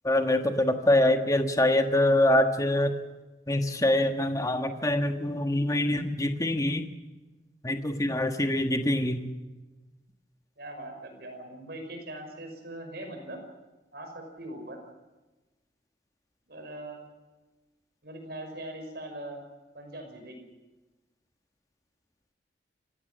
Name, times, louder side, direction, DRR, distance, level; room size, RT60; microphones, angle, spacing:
voice 1, 0.0-2.9 3.5-6.9 7.6-9.2, left 1 dB, 20° left, 6 dB, 1.4 m, -24 dB
voice 2, 10.6-13.4 13.9-14.8 16.5-17.1 18.0-19.4 19.7-20.5, right 1 dB, 60° right, 5 dB, 5.6 m, -41 dB
27.0 x 16.0 x 7.5 m, 1.1 s
head